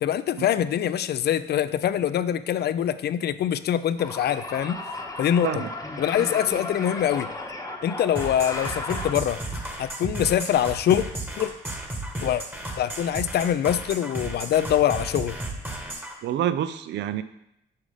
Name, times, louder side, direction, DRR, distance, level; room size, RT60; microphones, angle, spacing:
voice 1, 0.0-4.8 5.2-5.6 6.0-7.3 7.8-9.4 9.8-11.1 11.4-11.5 12.2-12.4 12.8-15.4, left 10 dB, 55° left, 14 dB, 0.4 m, -24 dB
sound 1, 4.0-9.1, left 2 dB, 15° left, 1.0 m, -34 dB
sound 2, 8.2-16.1, right 1 dB, 10° right, 1.2 m, -34 dB
voice 2, 16.2-17.2, right 10 dB, 65° right, 13 dB, 0.4 m, -27 dB
5.6 x 4.9 x 4.9 m, 0.81 s
cardioid pair, 90°, 20 cm